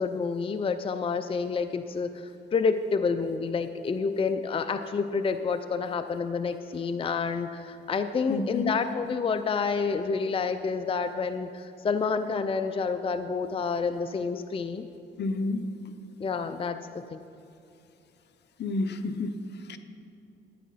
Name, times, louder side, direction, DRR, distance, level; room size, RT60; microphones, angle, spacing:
voice 1, 0.0-14.9 16.2-16.8 17.1-17.2, left 5 dB, 25° left, 9 dB, 0.5 m, -29 dB
voice 2, 8.3-8.7 15.2-15.6 18.6-19.4 19.7-19.8, left 3 dB, 60° left, 9 dB, 0.8 m, -29 dB
12.5 x 9.4 x 5.6 m, 2.6 s
cardioid pair, 90°, 20 cm